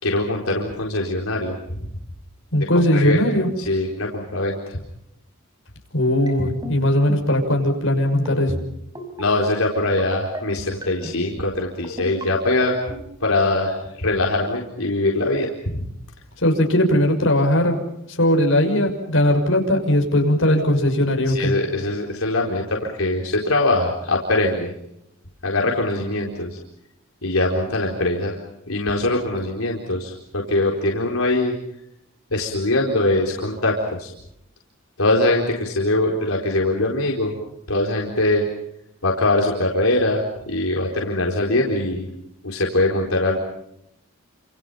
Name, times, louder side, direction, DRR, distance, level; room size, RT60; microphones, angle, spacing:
voice 1, 0.0-1.6 2.9-3.2 3.7-4.8 9.2-12.8 13.2-15.8 21.3-24.7 25.4-26.6 27.2-28.4 28.7-31.6 32.3-34.1 35.0-37.3 37.7-38.5 39.0-42.1 42.4-43.4, left 2 dB, 90° left, 0 dB, 4.4 m, -22 dB
voice 2, 2.5-3.5 5.9-8.5 16.4-17.8 18.1-21.5, left 1 dB, 70° left, 3 dB, 6.2 m, -19 dB
sound 1, 6.3-6.7 7.1-7.4 8.1-8.6 8.9-9.2 10.0-10.4 10.8-11.2 11.8-12.2 12.7-13.0, left 1 dB, 20° right, 5.5 m, -31 dB
29.5 x 28.0 x 5.7 m, 0.79 s
head